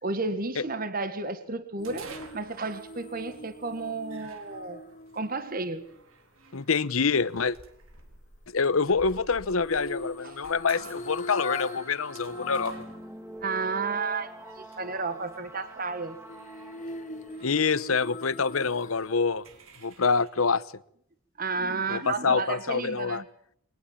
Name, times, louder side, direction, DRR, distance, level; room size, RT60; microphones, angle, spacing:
voice 1, 0.0-4.8 5.1-5.8 10.2-10.5 13.4-16.2 21.4-23.2, right 3 dB, 45° right, 11 dB, 1.6 m, -32 dB
sound 1, 1.8-6.0 9.6-13.0 13.4-13.5 16.3-19.2 19.5-19.6, left 2 dB, 35° left, 1.8 m, -40 dB
sound 2, 1.8-20.3, right 3 dB, 85° right, 4.0 m, -52 dB
voice 2, 6.5-7.6 8.5-12.8 17.4-19.4 19.8-20.6 21.9-23.2, left 5 dB, 85° left, 18 dB, 0.9 m, -26 dB
sound 3, 11.6-18.5, right 1 dB, 15° right, 2.0 m, -46 dB
22.5 x 20.0 x 7.3 m, 0.66 s
head